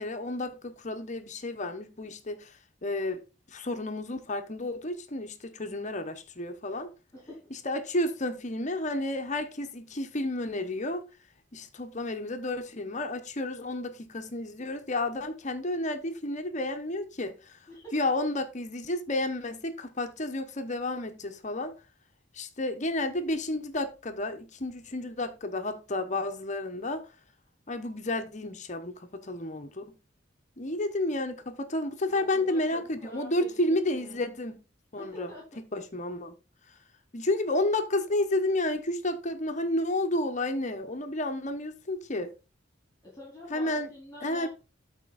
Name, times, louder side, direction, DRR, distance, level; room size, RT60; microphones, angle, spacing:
voice 1, 0.0-3.2 3.5-6.9 7.6-11.1 11.5-17.6 17.9-21.7 22.3-27.0 27.7-29.9 30.6-34.6 34.9-35.3 35.7-36.4 37.1-42.3 43.5-43.9 44.2-44.5, left 1 dB, 40° left, 1.0 m, -31 dB
voice 2, 7.1-7.5 17.7-18.0 32.1-34.3 35.0-35.6 43.0-44.5, right 1 dB, 15° left, 4.3 m, -46 dB
12.5 x 4.5 x 4.1 m
head